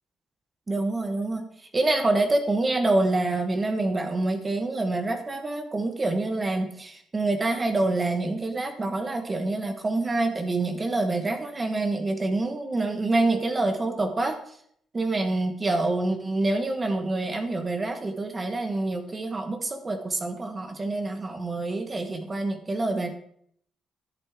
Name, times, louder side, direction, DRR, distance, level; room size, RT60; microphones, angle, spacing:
voice 1, 0.7-1.5 1.7-14.4 14.9-23.1, right 2 dB, 25° right, 6 dB, 1.3 m, -26 dB
11.0 x 7.9 x 3.6 m, 0.66 s
cardioid pair, 90°, 0 cm